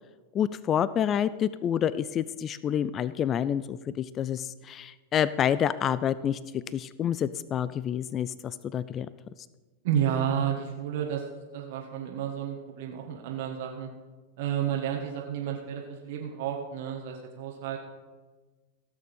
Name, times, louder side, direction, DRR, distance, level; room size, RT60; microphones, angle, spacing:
voice 1, 0.3-6.4 6.7-9.1, left 9 dB, 30° left, 17 dB, 0.4 m, -28 dB
voice 2, 9.8-11.2 11.5-13.9 14.4-17.8, right 9 dB, 65° right, 1 dB, 1.5 m, -31 dB
16.5 x 6.7 x 5.4 m, 1.3 s
hypercardioid pair, 120°, 0 cm